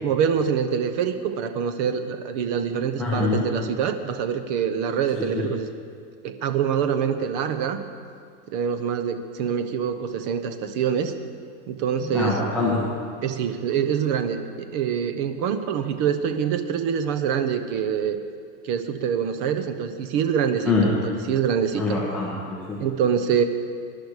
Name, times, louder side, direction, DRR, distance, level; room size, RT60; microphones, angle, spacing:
voice 1, 0.0-5.7 6.2-7.8 8.5-11.1 11.7-12.4 13.2-18.2 18.6-22.0 22.8-23.4, right 7 dB, 35° right, 9 dB, 0.9 m, -25 dB
voice 2, 3.0-3.4 5.2-5.5 12.1-12.9 20.6-20.9 21.8-22.8, left 3 dB, 5° left, -9 dB, 1.4 m, -24 dB
20.0 x 11.5 x 4.9 m, 2.2 s
supercardioid pair, 180°, 37 cm